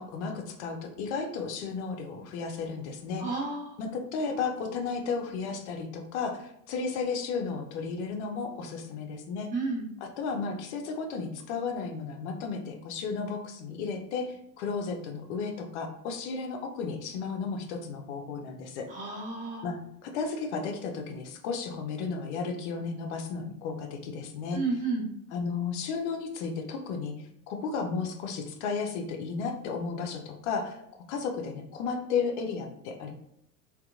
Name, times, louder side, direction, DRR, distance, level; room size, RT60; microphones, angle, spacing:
voice 1, 0.0-3.4 3.8-9.5 10.0-18.9 19.6-24.6 25.3-30.8 31.1-33.1, left 5 dB, 50° left, 4 dB, 0.5 m, -34 dB
voice 2, 3.2-3.6 9.5-9.8 18.9-19.7 24.5-25.0, right 3 dB, 15° right, -2 dB, 0.6 m, -31 dB
2.6 x 2.2 x 2.4 m, 0.76 s
figure-of-eight pair, 70°, 47 cm